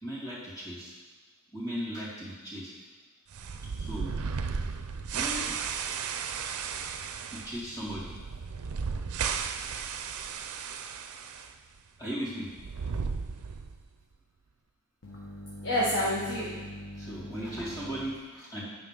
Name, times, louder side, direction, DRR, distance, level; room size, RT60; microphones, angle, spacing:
voice 1, 0.0-0.9 1.5-2.7 3.8-4.1 5.1-5.5 7.3-8.2 10.2-10.3 12.0-12.5 16.9-18.6, equal, 15° left, -9 dB, 2.5 m, -37 dB
sound 1, 3.3-11.5 11.8-11.9 12.5-13.9, right 6 dB, 75° right, 0.5 m, -35 dB
voice 2, 15.0-17.8, equal, 55° left, -5 dB, 1.3 m, -32 dB
9.5 x 5.7 x 3.9 m, 1.2 s
head